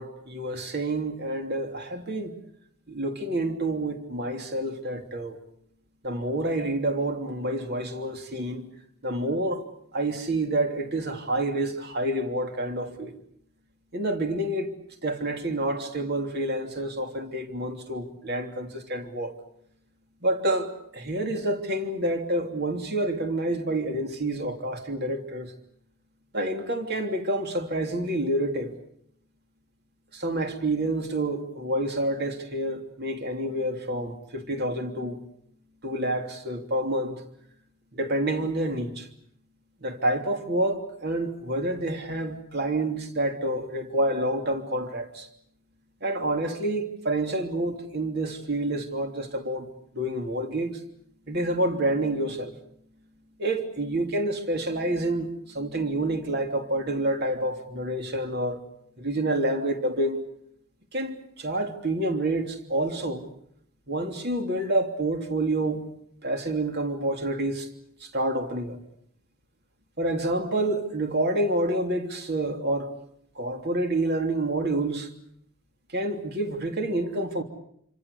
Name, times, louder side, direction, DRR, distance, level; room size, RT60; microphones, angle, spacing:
voice 1, 0.0-2.3 2.9-5.4 6.0-8.7 9.0-9.6 9.9-13.2 13.9-14.7 15.0-19.3 20.2-25.5 26.3-28.7 30.1-35.2 35.8-37.2 37.9-39.1 39.8-45.3 46.0-49.7 49.9-50.7 51.3-52.5 53.4-58.6 59.0-60.2 60.9-63.3 63.9-65.8 66.2-67.7 68.0-68.8 70.0-72.9 73.3-75.1 75.9-77.4, right 1 dB, 50° right, 3.1 m, -28 dB
28.0 x 26.0 x 6.8 m
head